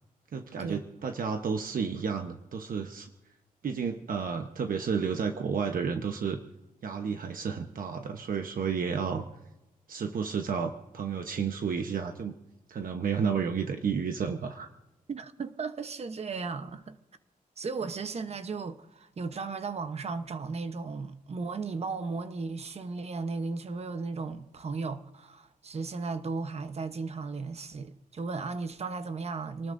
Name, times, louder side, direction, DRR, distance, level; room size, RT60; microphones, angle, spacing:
voice 1, 0.3-3.1 3.6-6.4 6.8-9.2 9.9-12.3 12.7-14.7, right 6 dB, 70° right, 1.1 m, -31 dB
voice 2, 15.1-17.0 17.6-29.7, right 4 dB, 45° right, 1.0 m, -35 dB
27.5 x 19.5 x 2.7 m
wide cardioid pair, 175°, 15 cm